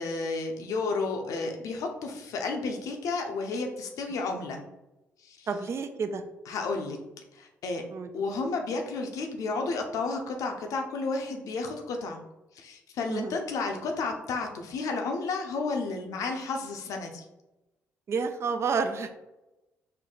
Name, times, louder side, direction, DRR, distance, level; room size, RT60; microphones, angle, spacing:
voice 1, 0.0-4.6 5.2-5.5 6.5-7.0 7.3-7.8 8.1-12.2 12.5-17.3, left 3 dB, 70° left, 3 dB, 0.7 m, -32 dB
voice 2, 5.5-6.2 7.9-8.1 13.1-13.4 18.1-19.1, right 5 dB, 50° right, 7 dB, 0.5 m, -29 dB
4.4 x 2.1 x 3.8 m, 0.99 s
supercardioid pair, 60°, 6 cm